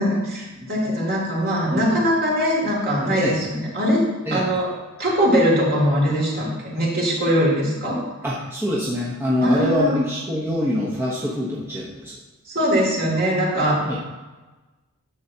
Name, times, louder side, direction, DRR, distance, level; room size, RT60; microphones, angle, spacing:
voice 1, 0.0-4.0 4.3-4.7 5.0-8.0 9.4-10.0 12.5-14.0, equal, 45° right, -4 dB, 2.5 m, -21 dB
voice 2, 0.6-1.0 1.7-1.9 3.1-3.3 4.3-4.5 8.2-12.2 13.8-14.0, left 1 dB, 10° right, -6 dB, 0.9 m, -25 dB
10.0 x 7.3 x 2.8 m, 1.2 s
head